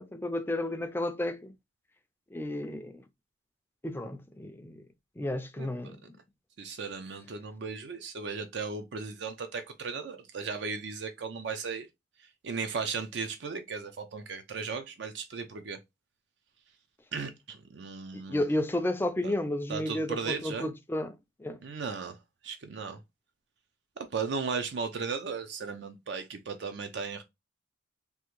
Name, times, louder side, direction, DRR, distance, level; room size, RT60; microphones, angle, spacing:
voice 1, 0.0-1.5 2.3-3.0 3.8-4.8 5.2-6.0 18.1-21.6, left 1 dB, 10° left, 0.3 m, -32 dB
voice 2, 6.6-11.9 12.2-15.8 17.1-18.5 19.2-19.3 19.7-20.7 21.6-22.2 22.4-23.0 24.0-27.2, right 5 dB, 70° right, 0.5 m, -36 dB
3.5 x 2.5 x 3.0 m
head